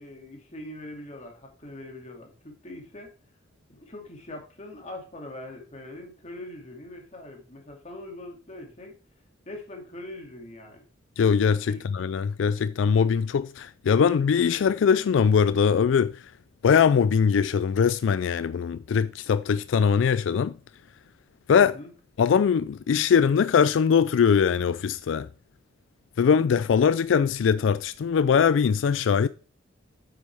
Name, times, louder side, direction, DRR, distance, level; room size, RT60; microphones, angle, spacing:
voice 1, 0.0-3.1 3.7-9.0 9.5-10.8 11.7-11.8 21.6-21.9, left 1 dB, 40° left, 2.5 m, -42 dB
voice 2, 11.2-16.2 16.6-20.5 21.5-21.8 22.2-25.3 26.2-29.3, left 6 dB, 90° left, 0.4 m, -21 dB
9.3 x 7.6 x 3.5 m
head